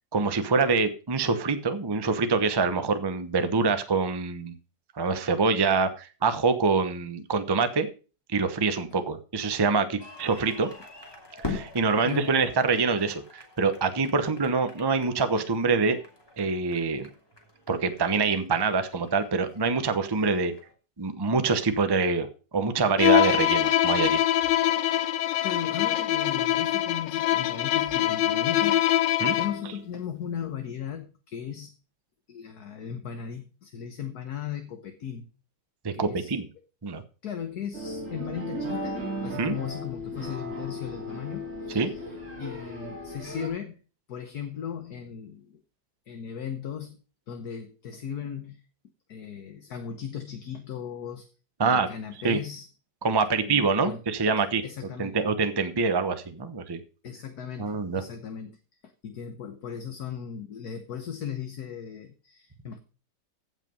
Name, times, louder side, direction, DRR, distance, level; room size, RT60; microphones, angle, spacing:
voice 1, 0.1-4.5 5.0-7.9 8.3-10.7 11.4-16.0 16.4-17.1 17.7-20.5 21.0-22.3 22.5-24.2 29.2-29.3 35.8-36.4 36.8-37.0 39.4-39.5 41.7-41.9 51.6-51.9 52.2-52.4 53.0-54.6 55.0-56.8 57.6-58.0, right 4 dB, 20° right, 10 dB, 0.7 m, -25 dB
sound 1, 10.0-20.7, left 3 dB, 15° left, 2.9 m, -43 dB
voice 2, 12.0-12.4 25.2-31.7 32.3-35.3 35.9-36.3 37.2-43.8 44.1-45.6 46.1-47.0 47.3-48.6 49.1-51.3 51.6-52.7 53.4-54.0 54.6-55.2 57.0-58.6 59.0-62.8, left 8 dB, 60° left, 6 dB, 1.6 m, -37 dB
Bowed string instrument, 23.0-29.7, left 12 dB, 80° left, 1.4 m, -24 dB
sound 2, 37.7-43.5, equal, 45° right, 4.6 m, -36 dB
15.5 x 6.0 x 5.4 m, 0.36 s
omnidirectional pair, 2.0 m